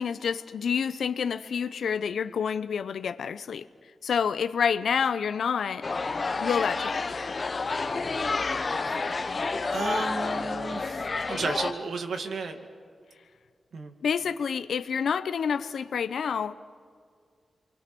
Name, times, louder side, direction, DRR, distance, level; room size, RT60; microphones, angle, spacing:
voice 1, 0.0-3.7 4.0-5.9 6.4-7.2 14.0-16.5, left 7 dB, 90° left, 0.8 m, -28 dB
sound 1, 5.8-11.7, left 3 dB, 35° left, 0.9 m, -29 dB
voice 2, 9.4-12.7 13.7-13.9, right 4 dB, 75° right, 2.2 m, -34 dB
29.5 x 23.5 x 6.2 m
wide cardioid pair, 170°, 0 cm